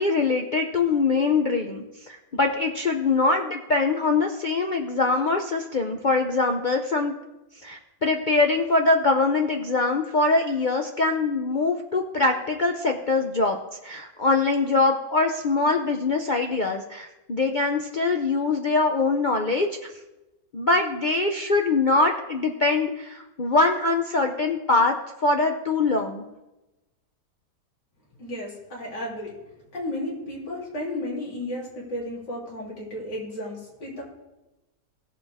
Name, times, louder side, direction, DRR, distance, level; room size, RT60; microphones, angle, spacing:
voice 1, 0.0-7.1 7.6-13.6 13.8-19.7 20.5-24.9 25.2-26.2, left 3 dB, 70° left, 3 dB, 0.4 m, -23 dB
voice 2, 28.2-29.3 29.7-34.0, left 1 dB, 85° left, -4 dB, 3.8 m, -33 dB
17.0 x 7.2 x 3.5 m, 1.0 s
omnidirectional pair, 1.8 m